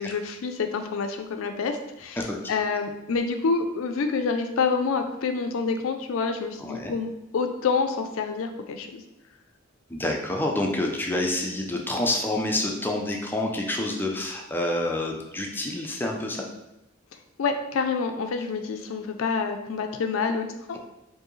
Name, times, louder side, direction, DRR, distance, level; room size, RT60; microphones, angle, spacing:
voice 1, 0.0-9.0 17.4-20.8, left 4 dB, 80° left, 6 dB, 0.4 m, -27 dB
voice 2, 2.2-2.5 6.6-6.9 9.9-16.5, left 1 dB, 10° left, 1 dB, 0.4 m, -28 dB
4.5 x 2.7 x 3.1 m, 0.91 s
head